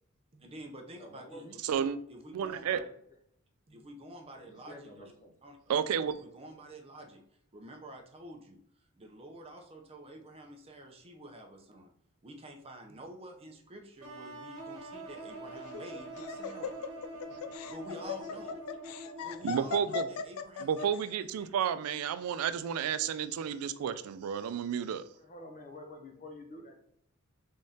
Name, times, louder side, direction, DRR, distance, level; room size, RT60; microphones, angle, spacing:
voice 1, 0.3-1.6 2.1-2.9 3.7-5.0 5.4-5.6 6.1-7.2 7.5-8.6 9.0-11.9 12.2-16.8 17.7-18.6 19.2-20.9 21.4-21.5, right 1 dB, 30° right, 0.5 m, -48 dB
voice 2, 0.9-1.6 4.3-5.4 18.0-18.4 23.7-23.8 25.1-26.8, left 1 dB, 35° left, 0.6 m, -49 dB
voice 3, 1.6-2.0 2.3-2.8 5.7-6.1 17.3-17.4 19.4-20.1 20.6-25.0, right 8 dB, 85° right, 0.3 m, -31 dB
sound 1, 14.0-19.8, right 1 dB, 70° right, 1.0 m, -45 dB
Laughter, 15.6-21.0, left 7 dB, 85° left, 0.3 m, -38 dB
3.6 x 3.5 x 2.7 m
head